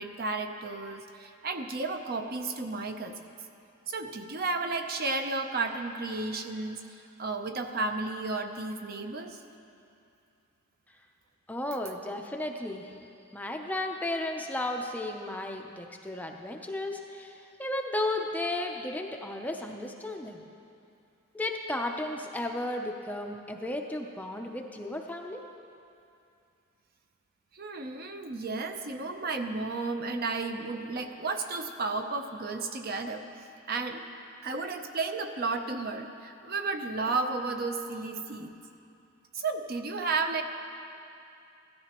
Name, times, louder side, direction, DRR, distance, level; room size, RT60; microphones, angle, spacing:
voice 1, 0.0-3.1 3.9-6.8 7.2-9.4 27.5-33.3 33.7-34.0 34.4-38.5 39.3-40.4, right 3 dB, 45° right, 6 dB, 0.6 m, -33 dB
voice 2, 11.5-12.9 13.3-20.4 21.3-25.4, left 1 dB, 5° left, 2 dB, 0.5 m, -34 dB
17.0 x 13.0 x 3.0 m, 2.7 s
head